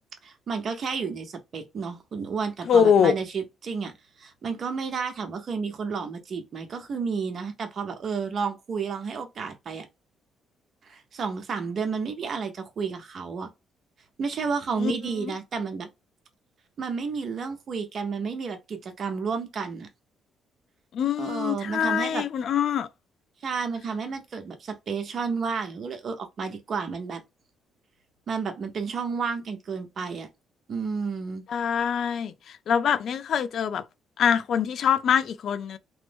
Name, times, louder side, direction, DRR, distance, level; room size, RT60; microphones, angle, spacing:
voice 1, 0.2-9.9 10.8-13.5 14.2-15.9 16.8-19.9 21.2-22.2 23.4-27.2 28.3-30.3 30.7-31.4, right 5 dB, 55° right, 0.8 m, -31 dB
voice 2, 2.7-3.1 14.8-14.9 15.2-15.3 20.9-22.9 31.5-32.3 32.7-33.8 34.2-35.8, left 8 dB, 65° left, 0.4 m, -23 dB
3.1 x 2.0 x 3.3 m
cardioid pair, 90°, 0 cm